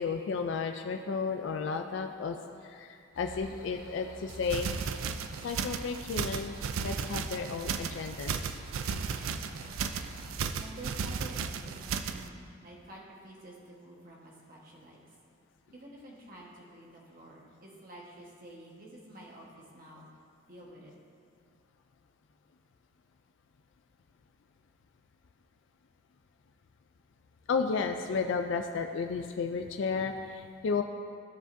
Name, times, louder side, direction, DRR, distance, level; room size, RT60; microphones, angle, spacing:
voice 1, 0.0-4.7 5.4-6.5 6.8-8.3 27.5-30.8, left 5 dB, 60° left, 5 dB, 0.4 m, -33 dB
sound 1, 3.1-10.4, left 1 dB, 85° left, 0.9 m, -51 dB
sound 2, 4.3-12.3, right 6 dB, 75° right, 0.4 m, -35 dB
voice 2, 10.6-15.0 15.7-19.5 19.7-20.1 20.5-20.9, right 1 dB, 45° right, -3 dB, 1.3 m, -49 dB
14.0 x 4.9 x 2.6 m, 2.4 s
head